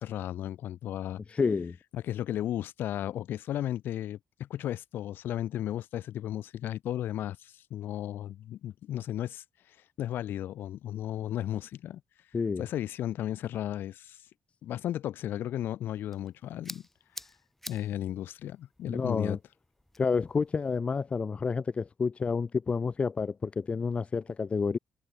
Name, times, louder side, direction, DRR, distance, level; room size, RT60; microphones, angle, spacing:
voice 1, 0.0-1.2 1.9-9.4 10.0-12.0 12.6-14.2 14.6-16.8 17.7-19.4, left 12 dB, 80° left, 2.4 m, -34 dB
voice 2, 1.3-1.8 12.3-12.7 18.9-19.4 20.0-24.8, left 5 dB, 35° left, 0.5 m, -29 dB
sound 1, 15.8-20.8, left 1 dB, 5° left, 5.1 m, -49 dB
cardioid pair, 80°, 4 cm